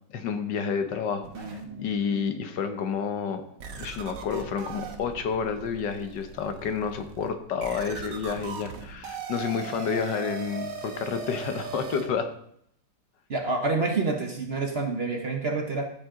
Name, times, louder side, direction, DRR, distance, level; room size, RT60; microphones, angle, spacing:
voice 1, 0.1-3.4 3.8-12.3, left 6 dB, 80° left, 7 dB, 1.7 m, -30 dB
sound 1, 1.2-2.4 3.0-3.1 3.6-12.1, right 5 dB, 70° right, 1.8 m, -39 dB
voice 2, 13.3-15.9, right 3 dB, 45° right, 3 dB, 1.0 m, -27 dB
13.5 x 7.7 x 3.8 m, 0.71 s
omnidirectional pair, 1.9 m